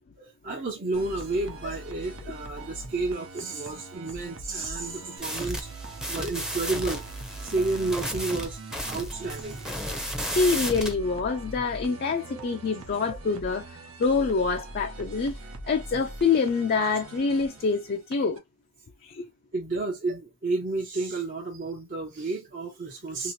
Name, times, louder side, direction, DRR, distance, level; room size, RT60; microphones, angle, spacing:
voice 1, 0.2-5.7 6.1-7.0 7.4-8.6 8.9-9.6 12.3-12.6 13.1-13.2 19.5-23.3, right 3 dB, 45° right, 0.7 m, -31 dB
sound 1, 0.9-18.4, right 2 dB, 85° right, 0.9 m, -42 dB
sound 2, 5.2-10.9, equal, 5° right, 0.6 m, -34 dB
voice 2, 10.4-15.4 15.7-18.4 19.0-19.3, left 4 dB, 45° left, 0.4 m, -26 dB
2.9 x 2.9 x 2.7 m
head